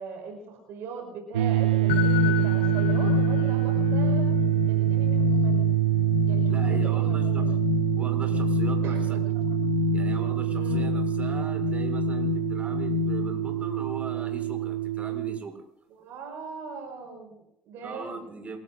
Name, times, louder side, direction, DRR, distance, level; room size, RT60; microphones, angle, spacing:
voice 1, 0.0-4.3 4.7-5.6 6.3-7.6 8.8-9.4 10.6-10.9 15.9-18.2, right 4 dB, 65° right, 3 dB, 5.5 m, -40 dB
sound 1, 1.3-15.4, right 15 dB, 90° right, 0.8 m, -25 dB
sound 2, 1.9-13.6, left 13 dB, 80° left, 1.2 m, -29 dB
voice 2, 6.5-7.4 8.0-9.0 9.9-15.6 17.8-18.6, right 4 dB, 30° right, 3 dB, 6.7 m, -39 dB
28.5 x 19.0 x 2.5 m, 0.80 s
hypercardioid pair, 60°, 4 cm